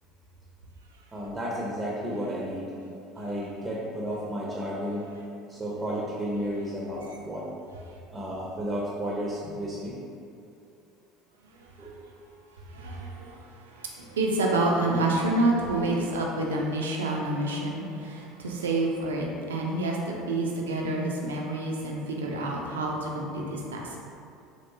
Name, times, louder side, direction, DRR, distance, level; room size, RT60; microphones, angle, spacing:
voice 1, 1.1-2.7 3.2-5.1 5.5-7.5 8.1-9.9 11.8-11.9, equal, 15° right, -5 dB, 0.5 m, -32 dB
voice 2, 12.7-23.8, right 2 dB, 75° right, -1 dB, 0.4 m, -28 dB
3.1 x 2.7 x 2.6 m, 2.6 s
figure-of-eight pair, 65°, 0 cm